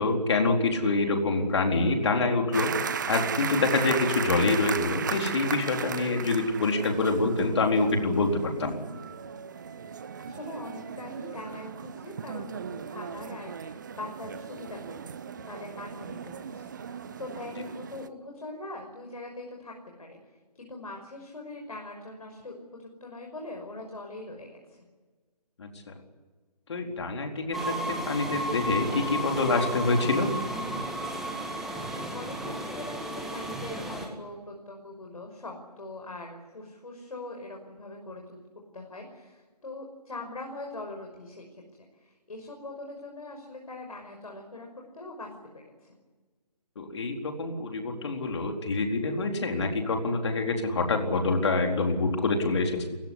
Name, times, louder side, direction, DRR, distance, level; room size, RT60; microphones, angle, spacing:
voice 1, 0.0-8.8 25.6-25.9 26.7-30.3 46.8-52.9, left 3 dB, 45° left, 3 dB, 4.2 m, -26 dB
sound 1, 2.5-18.1, right 7 dB, 30° right, 0.9 m, -36 dB
voice 2, 9.9-15.2 15.5-20.2 20.5-24.8 32.0-38.4 38.7-41.6 42.0-44.7 44.9-45.3 45.6-46.0, left 2 dB, 60° left, 2 dB, 5.7 m, -42 dB
sound 2, 27.5-34.1, right 1 dB, ahead, 2.1 m, -33 dB
30.0 x 16.5 x 9.9 m, 1.4 s
figure-of-eight pair, 155°, 21 cm